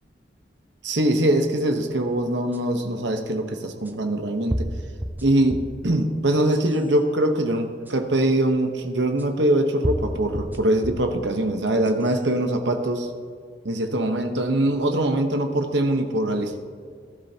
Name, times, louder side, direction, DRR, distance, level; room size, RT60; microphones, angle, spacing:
voice 1, 0.8-4.7 5.2-13.1 13.6-16.6, right 1 dB, 75° right, 5 dB, 1.0 m, -23 dB
sound 1, 2.5-2.6 3.8-3.9 4.5-5.8 6.3-6.9 7.9-8.0 9.2-9.3 9.8-11.1 11.7-12.2, equal, 10° right, 0.6 m, -30 dB
17.5 x 11.5 x 2.8 m, 2.2 s
head